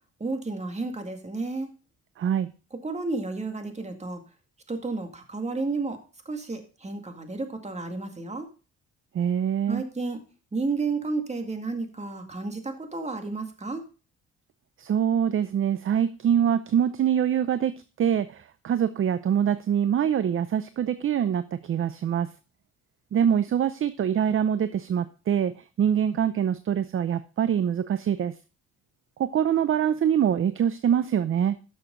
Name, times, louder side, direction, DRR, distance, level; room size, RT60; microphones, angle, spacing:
voice 1, 0.2-1.7 2.7-4.2 4.7-8.5 9.7-10.2 10.5-13.8, right 3 dB, 20° right, 6 dB, 2.1 m, -32 dB
voice 2, 2.2-2.5 9.1-9.8 14.8-17.7 18.0-22.3 23.1-28.3 29.2-31.6, right 9 dB, 45° right, 13 dB, 0.6 m, -24 dB
12.5 x 6.7 x 3.8 m, 0.34 s
cardioid pair, 90°, 30 cm